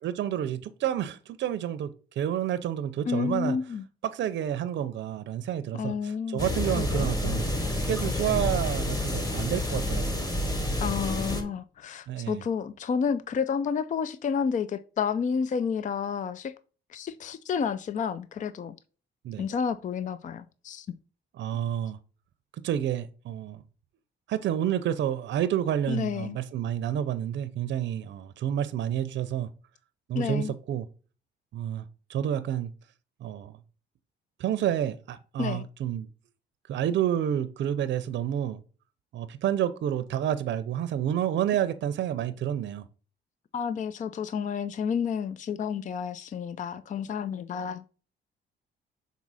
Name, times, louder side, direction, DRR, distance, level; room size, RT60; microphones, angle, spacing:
voice 1, 0.0-3.6 4.0-10.3 12.1-12.4 19.2-19.5 21.4-22.0 22.6-23.6 24.3-29.5 30.1-30.8 31.5-32.7 33.2-33.6 34.4-36.1 36.7-38.6 39.1-42.9, right 10 dB, 65° right, 0.6 m, -29 dB
voice 2, 3.1-3.8 5.7-6.5 6.7-7.1 10.8-16.5 16.9-18.8 19.4-20.9 25.9-26.4 30.1-30.5 35.4-35.6 43.5-47.8, left 6 dB, 40° left, 0.4 m, -30 dB
sound 1, 6.4-11.4, left 1 dB, 20° left, 1.8 m, -29 dB
6.1 x 4.1 x 4.0 m
cardioid pair, 90°, 20 cm